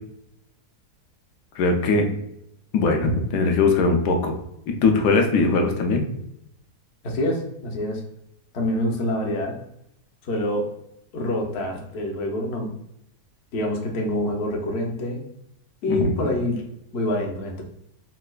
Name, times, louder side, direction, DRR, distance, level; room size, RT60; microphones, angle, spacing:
voice 1, 1.6-2.1 2.7-4.4 4.7-6.1 15.9-16.1, left 3 dB, 80° left, 3 dB, 1.2 m, -20 dB
voice 2, 7.0-8.0 8.5-9.5 10.2-10.7 11.1-12.7 13.5-15.2 15.8-16.6 16.9-17.6, left 1 dB, 55° left, 0 dB, 0.7 m, -26 dB
4.1 x 2.2 x 2.3 m, 0.78 s
omnidirectional pair, 1.8 m